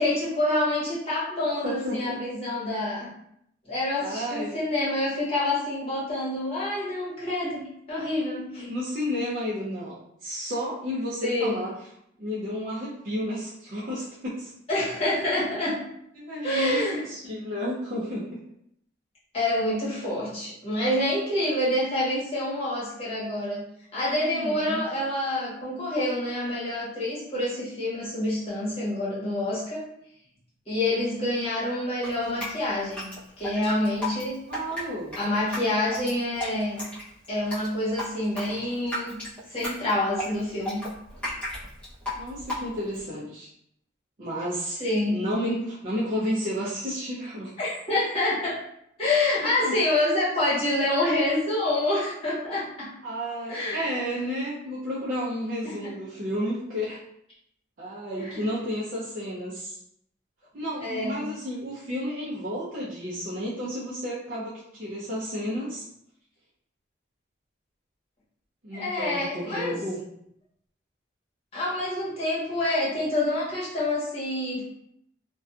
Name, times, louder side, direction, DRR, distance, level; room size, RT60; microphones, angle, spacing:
voice 1, 0.0-3.1 3.6-8.7 11.2-11.6 14.7-15.8 16.4-17.0 19.3-23.6 23.9-29.8 30.7-33.0 33.4-34.4 35.2-36.8 37.3-39.2 39.5-40.8 44.8-45.2 47.6-48.5 49.0-52.9 53.5-53.8 55.6-55.9 58.2-58.5 60.8-61.2 68.7-69.8 71.5-74.6, left 1 dB, 30° left, -8 dB, 1.1 m, -27 dB
voice 2, 1.6-2.2 4.0-4.5 8.7-11.7 12.2-14.5 16.2-18.4 24.2-24.8 34.5-35.2 42.2-43.5 44.2-47.5 49.4-49.8 53.0-57.0 57.8-59.8 60.5-65.8 68.6-70.0, equal, 45° right, -9 dB, 0.5 m, -32 dB
Drip, 32.0-43.0, left 1 dB, 5° left, 0.8 m, -35 dB
2.6 x 2.2 x 2.4 m, 0.73 s
head